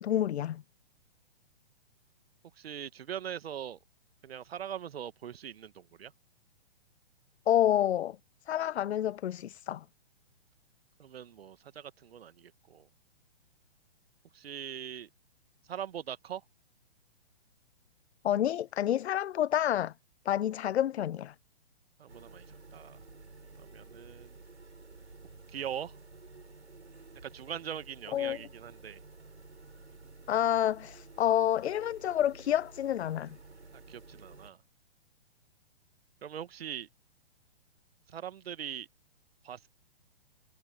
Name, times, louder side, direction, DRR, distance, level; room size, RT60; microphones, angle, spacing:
voice 1, 0.0-0.6 7.5-8.2 8.5-9.8 18.2-19.9 20.3-21.3 28.1-28.4 30.3-33.4, left 11 dB, 75° left, 0.5 m, -28 dB
voice 2, 2.6-3.8 4.2-6.1 11.0-12.9 14.3-15.1 15.7-16.4 22.0-22.4 22.7-23.0 23.6-24.4 25.5-26.0 27.2-29.0 33.9-34.6 36.2-36.9 38.1-38.9 39.4-39.7, right 9 dB, 65° right, 1.6 m, -41 dB
sound 1, 22.1-34.5, right 3 dB, 90° right, 6.3 m, -52 dB
figure-of-eight pair, 125°, 33 cm